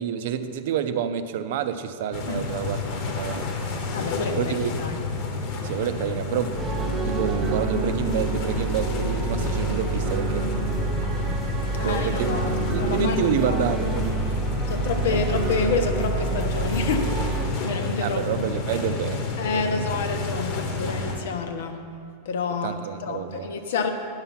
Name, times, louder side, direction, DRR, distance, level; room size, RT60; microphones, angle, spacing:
voice 1, 0.0-3.5 4.4-5.0 5.6-11.0 11.8-14.4 15.1-15.2 18.0-19.9 22.6-23.5, right 9 dB, 60° right, 10 dB, 0.5 m, -29 dB
sound 1, 2.1-21.1, left 3 dB, 45° left, 1.1 m, -30 dB
voice 2, 3.9-5.0 9.3-9.5 11.8-13.6 14.7-18.3 19.4-21.9 22.2-23.9, left 4 dB, 80° left, 6 dB, 0.9 m, -29 dB
sound 2, 6.6-17.5, right 4 dB, 15° right, 0.9 m, -28 dB
9.7 x 5.8 x 5.7 m, 2.3 s
supercardioid pair, 165°, 0 cm